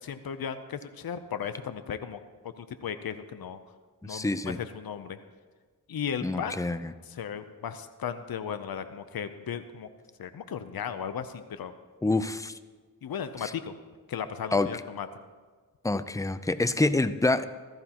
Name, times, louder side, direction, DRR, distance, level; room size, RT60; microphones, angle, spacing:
voice 1, 0.0-3.6 4.0-5.2 5.9-6.6 7.1-9.9 10.2-11.7 13.0-13.7 14.1-15.1, left 7 dB, 80° left, 10 dB, 0.6 m, -36 dB
voice 2, 4.0-4.6 6.2-6.9 12.0-12.5 13.4-13.5 14.5-14.7 15.8-17.5, left 2 dB, 10° left, 13 dB, 0.5 m, -27 dB
15.5 x 13.5 x 2.9 m, 1.5 s
cardioid pair, 55°, 36 cm